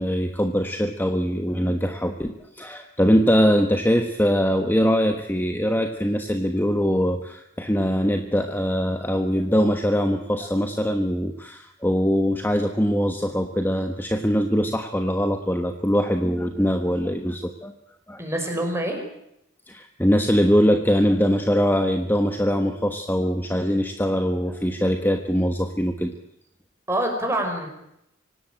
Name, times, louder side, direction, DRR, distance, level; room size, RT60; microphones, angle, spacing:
voice 1, 0.0-2.3 2.5-17.7 18.1-18.2 19.7-26.1, equal, 10° left, 6 dB, 1.3 m, -22 dB
voice 2, 18.2-19.0 26.9-27.7, right 1 dB, 15° right, 3 dB, 5.8 m, -25 dB
25.5 x 18.0 x 8.9 m, 0.82 s
head